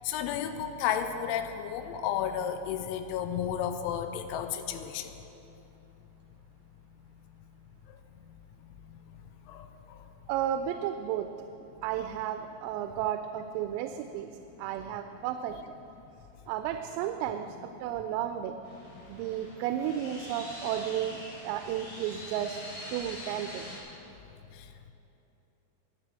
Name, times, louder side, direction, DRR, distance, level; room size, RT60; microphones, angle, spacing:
voice 1, 0.0-5.1 9.5-10.0 24.5-24.7, left 9 dB, 85° left, 8 dB, 2.7 m, -32 dB
voice 2, 10.3-11.3 11.8-14.3 14.6-15.8 16.5-18.6 19.1-21.2 21.4-22.6 22.9-23.7, right 10 dB, 85° right, 8 dB, 3.2 m, -33 dB
sound 1, 18.6-23.8, left 1 dB, 55° left, 6.0 m, -44 dB
11.5 x 9.4 x 8.1 m, 3.0 s
omnidirectional pair, 5.9 m